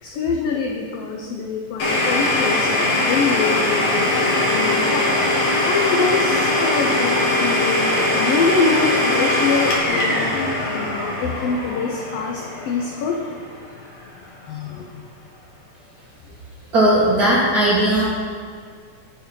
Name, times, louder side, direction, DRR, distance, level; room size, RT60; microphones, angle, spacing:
voice 1, 0.0-4.1 4.5-5.1 5.7-10.3 10.7-13.3 14.5-15.0, left 5 dB, 90° left, 1 dB, 1.3 m, -24 dB
Domestic sounds home sounds, 1.8-13.4, left 1 dB, 60° left, 2.5 m, -21 dB
voice 2, 16.7-18.0, right 1 dB, 70° right, -7 dB, 0.9 m, -17 dB
8.8 x 4.5 x 5.4 m, 2.1 s
omnidirectional pair, 3.5 m